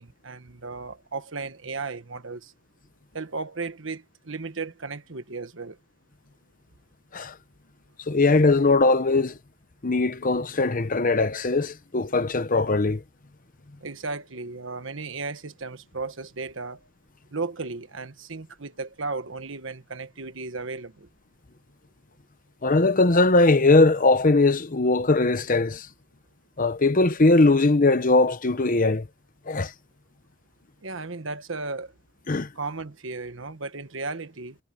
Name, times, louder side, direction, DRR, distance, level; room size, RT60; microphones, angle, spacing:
voice 1, 0.0-2.5 3.1-5.8 13.8-16.8 17.3-21.1 30.8-31.9 32.5-34.6, right 3 dB, 65° right, 1.4 m, -35 dB
voice 2, 8.1-9.4 9.8-13.0 22.6-25.9 26.6-29.1 29.5-29.7 32.3-32.5, left 3 dB, 40° left, 0.9 m, -20 dB
head